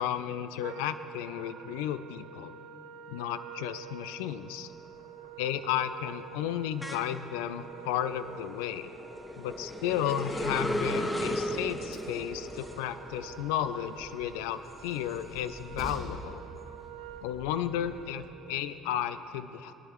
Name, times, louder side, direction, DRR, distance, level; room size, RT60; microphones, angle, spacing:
voice 1, 0.0-2.5 3.1-4.7 5.4-8.9 9.4-16.4 17.2-19.7, left 10 dB, 70° left, 12 dB, 0.3 m, -33 dB
Wind instrument woodwind instrument, 0.6-18.7, right 8 dB, 65° right, 0.5 m, -48 dB
sound 1, 3.9-4.3 4.7-15.9 16.4-18.1, equal, 10° left, 1.0 m, -37 dB
Train, 10.5-18.3, left 1 dB, 50° left, 2.0 m, -49 dB
20.0 x 9.7 x 3.0 m, 2.9 s
figure-of-eight pair, 55°, 0 cm